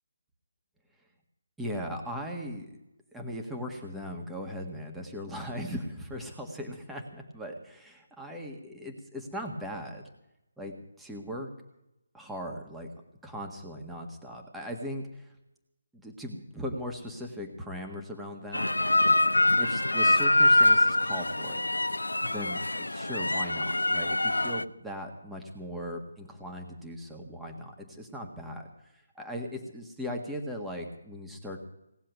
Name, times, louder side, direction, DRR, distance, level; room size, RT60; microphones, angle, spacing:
voice 1, 1.6-2.8 3.1-10.0 10.6-11.5 12.1-12.9 13.2-15.3 15.9-18.7 19.6-21.7 22.2-31.6, equal, 5° right, 1 dB, 1.7 m, -38 dB
sound 1, 18.5-24.6, left 1 dB, 85° left, 0.5 m, -24 dB
18.0 x 7.4 x 9.5 m, 0.87 s
figure-of-eight pair, 150°, 0 cm